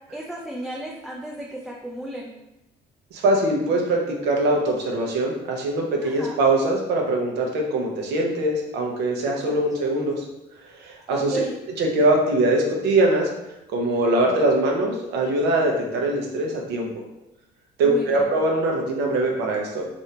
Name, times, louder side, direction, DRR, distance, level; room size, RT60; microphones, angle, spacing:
voice 1, 0.1-2.3 6.0-6.4 9.3-9.6 11.1-11.5 17.8-18.2, right 1 dB, ahead, -3 dB, 0.4 m, -33 dB
voice 2, 3.1-10.2 10.8-11.4 11.8-13.3 13.7-16.9 17.8-19.8, right 2 dB, 85° right, 1 dB, 0.7 m, -22 dB
3.3 x 2.6 x 2.7 m, 0.91 s
cardioid pair, 110°, 17 cm